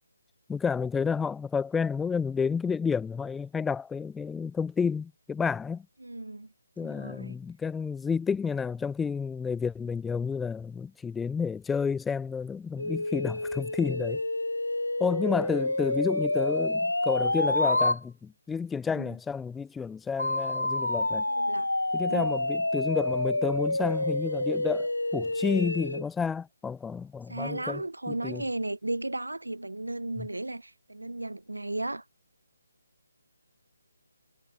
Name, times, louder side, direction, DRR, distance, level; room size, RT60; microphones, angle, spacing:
voice 1, 0.5-5.9 6.8-14.2 15.0-21.2 21.9-28.4 30.2-30.3, left 6 dB, 5° left, 0.3 m, -30 dB
voice 2, 6.0-6.5 6.8-7.4 18.9-19.2 21.3-21.7 22.1-22.3 27.3-32.0, right 2 dB, 85° right, 0.9 m, -35 dB
sound 1, 12.8-18.0 20.2-26.0, left 2 dB, 85° left, 0.5 m, -28 dB
figure-of-eight pair, 150°, 0 cm